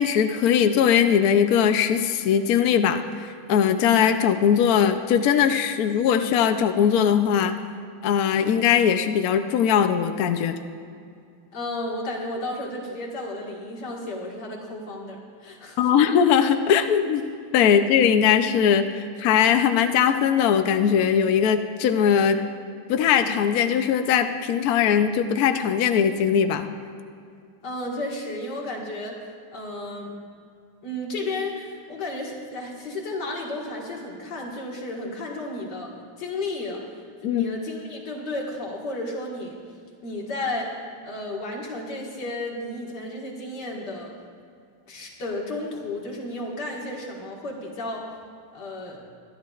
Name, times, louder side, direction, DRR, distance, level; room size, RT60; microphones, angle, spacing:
voice 1, 0.0-7.6 8.0-10.5 15.8-17.2 17.5-22.4 22.9-26.7 37.2-37.4, left 8 dB, 85° left, 8 dB, 0.8 m, -20 dB
voice 2, 11.5-15.8 27.6-29.2 29.5-30.1 30.8-36.8 37.2-39.6 40.0-40.7 41.0-44.1 44.9-48.1 48.5-49.0, left 2 dB, 55° left, -2 dB, 2.3 m, -33 dB
23.0 x 11.5 x 2.4 m, 2.3 s
omnidirectional pair, 2.3 m